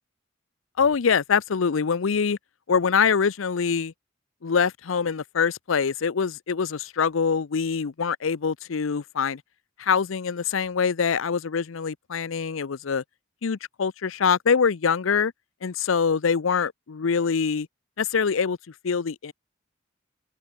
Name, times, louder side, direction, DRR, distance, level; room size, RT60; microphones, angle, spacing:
voice 1, 0.8-2.4 2.7-3.9 4.4-9.4 9.8-13.0 13.4-15.3 15.6-17.7 18.0-18.6 18.8-19.3, left 6 dB, 85° left, 0.6 m, -24 dB
open air
head